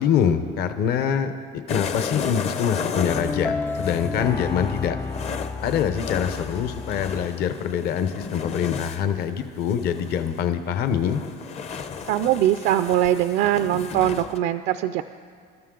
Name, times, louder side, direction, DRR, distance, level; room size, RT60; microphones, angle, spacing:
voice 1, 0.0-1.3 1.7-5.0 5.6-11.2, left 8 dB, 50° left, 9 dB, 0.9 m, -24 dB
sound 1, 1.7-10.4 10.7-14.4, left 6 dB, 30° left, 0.7 m, -34 dB
sound 2, 3.0-7.5, left 4 dB, 10° left, 0.3 m, -31 dB
voice 2, 12.1-15.0, right 12 dB, 55° right, 10 dB, 0.4 m, -21 dB
28.0 x 13.0 x 3.8 m, 2.2 s
cardioid pair, 155°, 21 cm